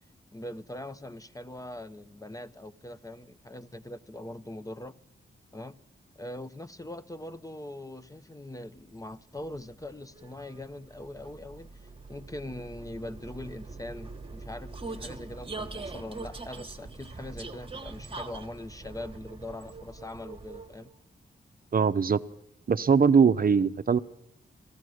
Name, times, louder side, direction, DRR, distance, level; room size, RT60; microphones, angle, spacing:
voice 1, 0.3-5.0 5.5-5.8 6.2-20.9, left 1 dB, 15° left, 0.6 m, -42 dB
Vehicle, 9.1-21.0, right 3 dB, 25° right, 1.2 m, -43 dB
voice 2, 21.7-22.2 22.7-24.0, right 6 dB, 45° right, 0.6 m, -21 dB
15.0 x 13.5 x 6.3 m
cardioid pair, 55°, 21 cm